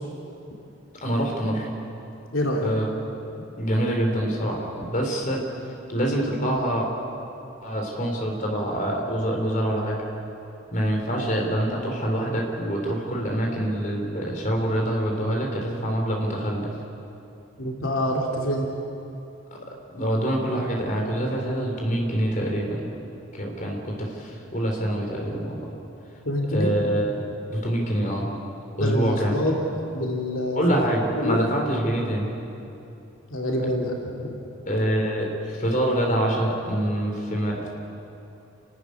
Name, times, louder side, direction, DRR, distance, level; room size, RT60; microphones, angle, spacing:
voice 1, 1.0-1.7 2.6-3.1 3.6-5.4 5.9-6.9 7.6-10.0 10.7-16.7 19.9-22.8 23.3-25.7 26.5-27.1 27.5-28.3 28.7-29.3 30.5-32.3 34.7-37.7, right 1 dB, 40° left, 0 dB, 3.9 m, -25 dB
voice 2, 2.3-2.7 17.6-18.7 26.2-26.7 28.8-29.5 29.9-30.6 31.2-31.4 33.3-34.3, left 1 dB, 75° left, -1 dB, 2.8 m, -26 dB
29.5 x 13.5 x 9.8 m, 2.9 s
head